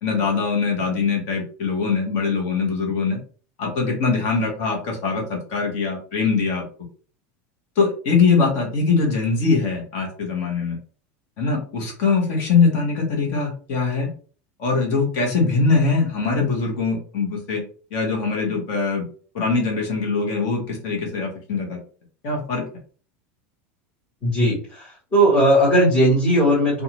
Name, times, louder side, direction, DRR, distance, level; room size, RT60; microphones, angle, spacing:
voice 1, 0.0-3.2 3.6-6.6 7.8-10.8 11.4-14.1 14.6-17.6 17.9-19.1 19.3-21.8 22.2-22.6, left 4 dB, 40° left, 0 dB, 1.1 m, -22 dB
voice 2, 24.2-26.8, right 1 dB, 20° left, -10 dB, 1.3 m, -18 dB
2.6 x 2.4 x 2.9 m, 0.40 s
supercardioid pair, 180°, 7 cm